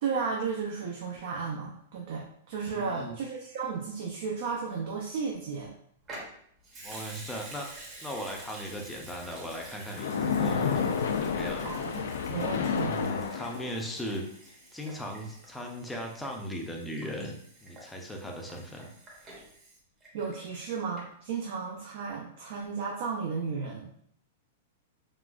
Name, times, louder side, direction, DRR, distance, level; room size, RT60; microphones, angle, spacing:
voice 1, 0.0-5.7 11.6-12.0 12.3-13.0 20.1-23.9, right 5 dB, 60° right, 0 dB, 0.5 m, -34 dB
voice 2, 2.7-3.2 6.8-7.7 8.0-10.8 11.2-11.7 12.8-14.2 14.7-18.9, equal, 5° left, 0 dB, 0.5 m, -38 dB
Water tap faucet / Sink (filling or washing) / Liquid, 6.0-20.7 21.0-21.1, right 1 dB, 20° right, 0.8 m, -48 dB
Splash splatter, 9.9-14.0, left 6 dB, 80° left, 0.4 m, -30 dB
3.8 x 2.4 x 2.4 m, 0.65 s
supercardioid pair, 155°, 0 cm